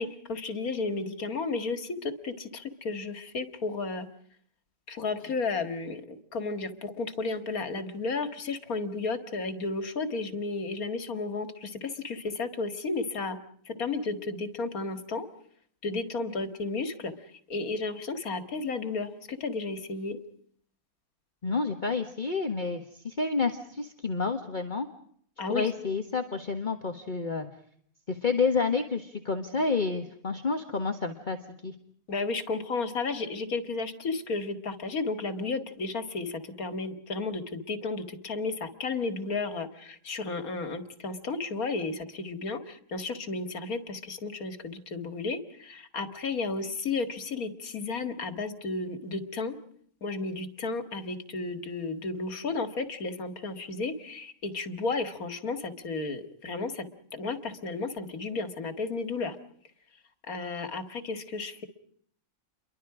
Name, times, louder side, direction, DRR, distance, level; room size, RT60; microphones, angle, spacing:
voice 1, 0.0-4.1 4.9-13.4 13.7-15.3 15.8-17.1 17.5-20.2 25.4-25.7 32.1-49.6 50.0-56.9 57.1-59.4 60.3-61.7, left 3 dB, 85° left, 9 dB, 2.4 m, -33 dB
voice 2, 21.4-24.9 25.5-27.5 28.1-31.7, left 4 dB, 35° left, 5 dB, 1.7 m, -29 dB
29.5 x 23.5 x 5.0 m, 0.63 s
omnidirectional pair, 1.5 m